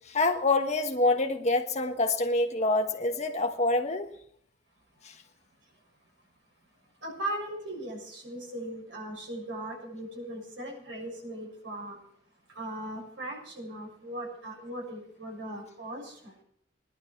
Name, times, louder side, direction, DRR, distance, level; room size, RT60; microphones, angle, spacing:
voice 1, 0.1-4.1 5.0-5.1, left 2 dB, 35° left, 5 dB, 1.4 m, -26 dB
voice 2, 7.0-12.0 12.5-16.3, right 1 dB, 75° right, -1 dB, 6.9 m, -38 dB
18.5 x 11.5 x 4.6 m, 0.69 s
head